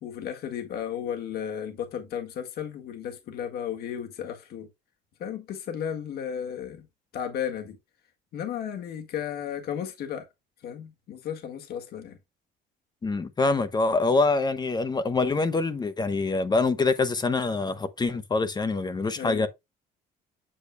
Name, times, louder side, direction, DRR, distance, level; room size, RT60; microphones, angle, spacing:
voice 1, 0.0-4.7 5.2-6.9 7.1-7.8 8.3-10.3 10.6-12.2 19.2-19.5, left 9 dB, 65° left, 1.7 m, -34 dB
voice 2, 13.0-19.5, left 3 dB, 25° left, 1.0 m, -25 dB
8.6 x 6.7 x 2.2 m
cardioid pair, 110°, 17 cm